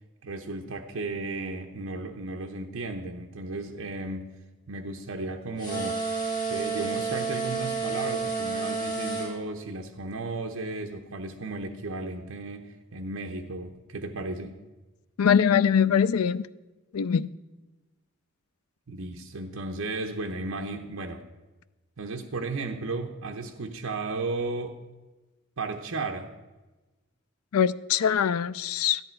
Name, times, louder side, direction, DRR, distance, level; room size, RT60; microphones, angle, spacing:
voice 1, 0.2-4.3 4.7-6.0 6.4-14.5 18.9-21.3 22.0-24.7 25.6-26.3, right 3 dB, 70° right, 3 dB, 0.9 m, -34 dB
sound 1, 5.6-9.3, right 4 dB, 20° left, 4.5 m, -30 dB
voice 2, 15.2-16.5 16.9-17.3 27.5-29.0, left 7 dB, 85° left, 16 dB, 0.4 m, -22 dB
13.5 x 11.0 x 4.5 m, 1.1 s
head